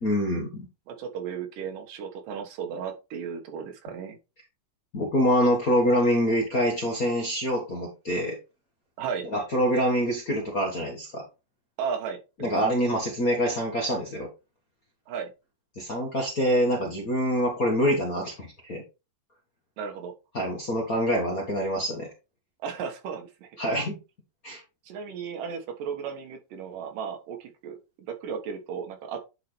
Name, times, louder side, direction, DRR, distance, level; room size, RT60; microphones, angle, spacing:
voice 1, 0.0-0.7 4.9-8.4 9.3-11.2 12.4-14.3 15.8-18.8 20.3-22.1 23.6-24.0 24.4-24.6, equal, 45° left, 1.2 m, -25 dB
voice 2, 0.9-4.2 9.0-9.3 11.8-12.5 15.1-15.3 19.8-20.1 22.6-23.5 24.9-29.2, right 6 dB, 85° right, 3.0 m, -35 dB
10.5 x 4.2 x 3.3 m
omnidirectional pair, 3.7 m